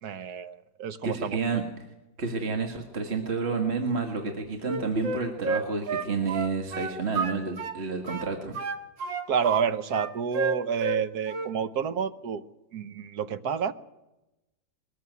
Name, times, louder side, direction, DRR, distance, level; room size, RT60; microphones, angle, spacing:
voice 1, 0.0-1.4 9.3-12.4 12.7-13.7, right 7 dB, 60° right, 11 dB, 1.4 m, -29 dB
voice 2, 1.0-1.6 2.2-8.6, right 4 dB, 35° right, 3 dB, 1.8 m, -30 dB
Wind instrument woodwind instrument, 4.6-7.8 8.1-9.6 9.9-11.0 11.3-11.6, right 4 dB, 85° right, 2.3 m, -30 dB
21.5 x 14.0 x 9.4 m, 0.97 s
omnidirectional pair, 2.0 m